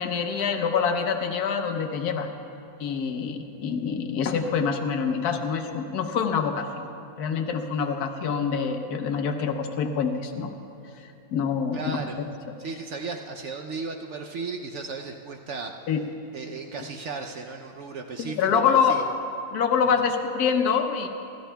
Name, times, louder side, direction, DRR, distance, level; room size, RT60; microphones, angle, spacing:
voice 1, 0.0-2.3 2.8-6.9 7.2-10.5 11.3-12.0 15.9-16.0 18.2-18.9 19.5-21.1, left 6 dB, 60° left, 4 dB, 1.3 m, -25 dB
voice 2, 11.7-12.2 12.6-15.7 16.3-19.0, right 4 dB, 90° right, 2 dB, 0.6 m, -35 dB
25.5 x 13.0 x 2.3 m, 2.8 s
omnidirectional pair, 2.0 m